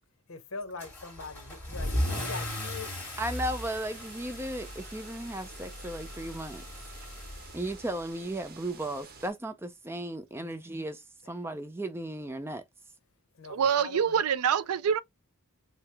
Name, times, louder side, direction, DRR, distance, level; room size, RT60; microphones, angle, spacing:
voice 1, 0.3-3.0 10.4-10.6 13.4-14.2, left 4 dB, 65° left, 0.8 m, -42 dB
Car / Engine starting / Accelerating revving vroom, 0.8-8.1, left 1 dB, 10° left, 1.8 m, -37 dB
voice 2, 3.2-6.6 7.5-12.6, right 1 dB, 10° right, 0.4 m, -35 dB
sound 1, 3.2-9.3, right 4 dB, 40° right, 0.8 m, -50 dB
voice 3, 13.5-15.0, right 7 dB, 80° right, 0.4 m, -25 dB
4.7 x 2.0 x 3.2 m
head